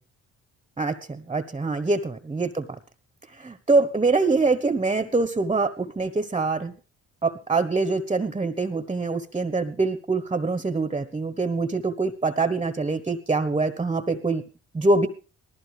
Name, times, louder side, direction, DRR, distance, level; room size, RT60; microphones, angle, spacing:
voice 1, 0.8-2.7 3.3-6.7 7.2-14.4 14.7-15.1, right 3 dB, 20° right, 12 dB, 1.2 m, -24 dB
19.5 x 15.0 x 3.4 m, 0.35 s
cardioid pair, 90°, 30 cm